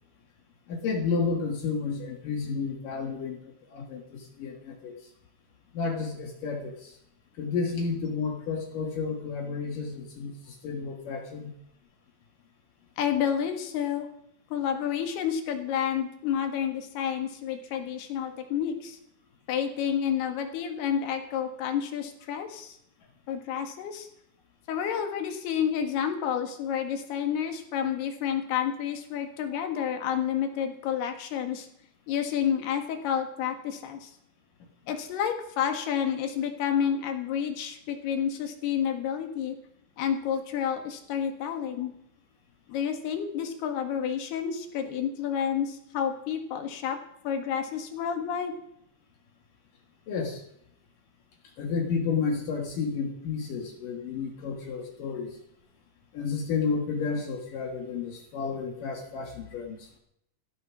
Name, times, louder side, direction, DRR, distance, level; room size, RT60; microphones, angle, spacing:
voice 1, 0.7-3.4 3.7-4.9 5.7-6.9 7.4-11.5 18.3-18.4 50.1-50.4 51.6-55.4 56.1-59.9, left 5 dB, 60° left, 3 dB, 3.0 m, -31 dB
voice 2, 13.0-14.1 14.5-19.0 19.5-22.8 23.3-24.1 24.7-31.7 32.1-34.1 34.9-39.6 40.0-41.9 42.7-47.0 47.2-48.5, left 8 dB, 80° left, 6 dB, 3.6 m, -30 dB
15.5 x 13.5 x 6.1 m, 0.75 s
omnidirectional pair, 4.6 m